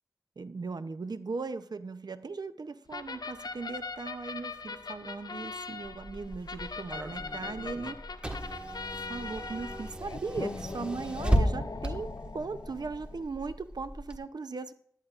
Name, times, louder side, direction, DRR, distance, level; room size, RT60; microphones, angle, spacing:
voice 1, 0.4-8.0 9.1-14.7, right 4 dB, 80° right, 12 dB, 0.6 m, -38 dB
sound 1, 2.9-13.3, left 4 dB, 75° left, 0.5 m, -40 dB
Car / Engine, 5.8-14.2, equal, 15° right, 1.5 m, -35 dB
14.0 x 11.0 x 2.5 m, 0.65 s
wide cardioid pair, 40°, 7 cm